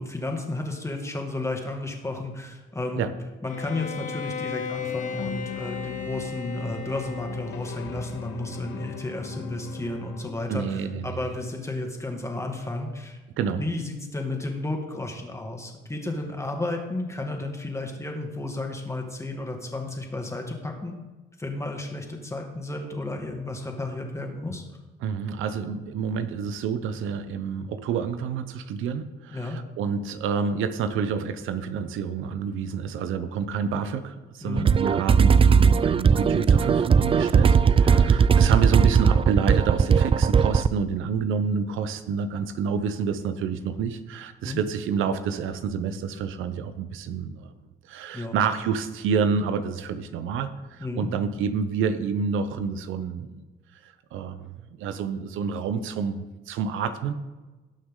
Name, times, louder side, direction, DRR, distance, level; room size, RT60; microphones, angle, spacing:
voice 1, 0.0-3.1 3.4-13.2 13.6-21.0 21.4-24.6 29.3-29.6 34.4-34.6 37.8-38.1 44.4-44.6 48.1-48.4 50.8-51.1, left 2 dB, 15° left, 2 dB, 2.1 m, -32 dB
Bowed string instrument, 3.4-7.9, left 6 dB, 40° left, 0.8 m, -35 dB
sound 1, 4.8-10.3, left 7 dB, 80° left, 1.1 m, -40 dB
voice 2, 10.5-11.1 13.4-13.6 25.0-47.5 47.9-53.4 53.8-57.1, right 6 dB, 85° right, 11 dB, 0.8 m, -28 dB
sound 2, 34.6-40.7, right 6 dB, 30° right, 0.3 m, -18 dB
18.0 x 6.3 x 3.8 m, 1.2 s
cardioid pair, 90°, 20 cm